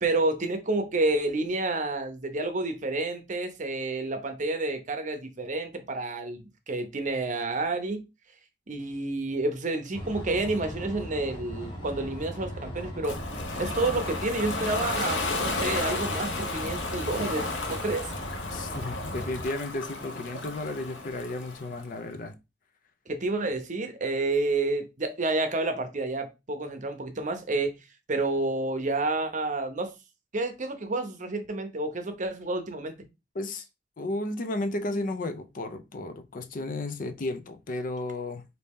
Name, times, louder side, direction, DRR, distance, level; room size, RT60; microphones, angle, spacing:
voice 1, 0.0-8.0 8.7-13.2 13.6-18.1 23.1-27.8 28.1-29.9 30.3-32.9, right 2 dB, 45° right, 0.7 m, -29 dB
sound 1, 9.9-19.4, equal, 30° left, 1.2 m, -38 dB
Ocean, 13.0-21.9, left 2 dB, 85° left, 0.8 m, -33 dB
voice 2, 18.5-22.4 33.3-33.6 34.0-38.4, left 2 dB, 50° left, 0.5 m, -33 dB
4.1 x 2.7 x 3.5 m
head